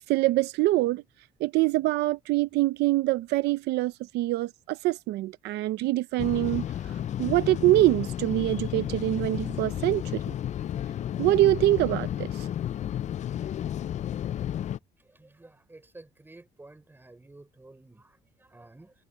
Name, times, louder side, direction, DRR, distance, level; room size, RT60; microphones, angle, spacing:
voice 1, 0.1-1.0 1.4-6.7 7.2-10.2 11.2-12.5, right 17 dB, 80° right, 0.7 m, -24 dB
sound 1, 6.2-14.8, left 11 dB, 45° left, 0.5 m, -32 dB
voice 2, 15.1-18.9, right 2 dB, 10° right, 4.0 m, -52 dB
cardioid pair, 110°, 17 cm